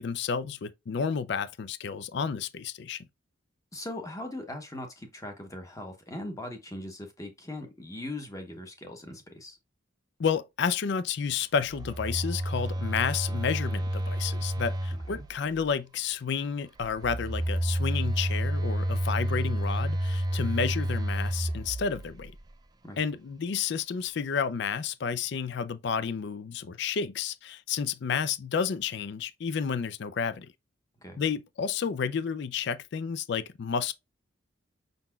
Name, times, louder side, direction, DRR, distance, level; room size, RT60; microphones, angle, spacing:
voice 1, 0.0-3.1 10.2-22.3 23.0-30.5 31.2-33.9, left 6 dB, 55° left, 0.4 m, -31 dB
voice 2, 3.7-9.6 15.1-15.2 22.8-23.0 31.0-31.2, left 1 dB, 15° left, 0.9 m, -40 dB
Telephone, 11.6-15.6 16.8-22.5, equal, 20° right, 0.4 m, -30 dB
5.4 x 4.0 x 2.3 m
head